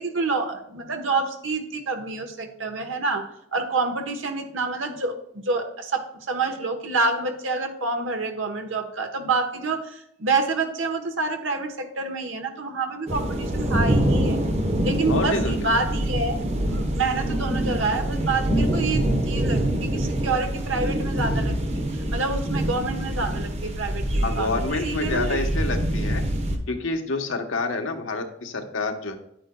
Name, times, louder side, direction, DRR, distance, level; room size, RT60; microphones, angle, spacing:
voice 1, 0.0-14.4 14.8-25.4, right 3 dB, 85° right, 4 dB, 1.2 m, -28 dB
sound 1, 13.1-26.6, right 1 dB, 35° right, 1.0 m, -25 dB
voice 2, 15.1-15.6 24.2-26.2 26.7-29.2, left 3 dB, 85° left, 4 dB, 1.1 m, -28 dB
9.9 x 9.0 x 2.3 m, 0.75 s
head